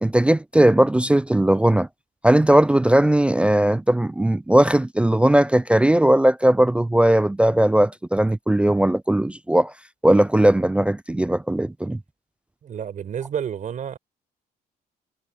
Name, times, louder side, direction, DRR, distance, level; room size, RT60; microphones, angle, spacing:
voice 1, 0.0-1.9 2.2-9.7 10.0-12.0, right 1 dB, 5° right, 0.3 m, -18 dB
voice 2, 12.6-14.0, right 8 dB, 50° right, 5.1 m, -30 dB
cardioid pair, 110°, 17 cm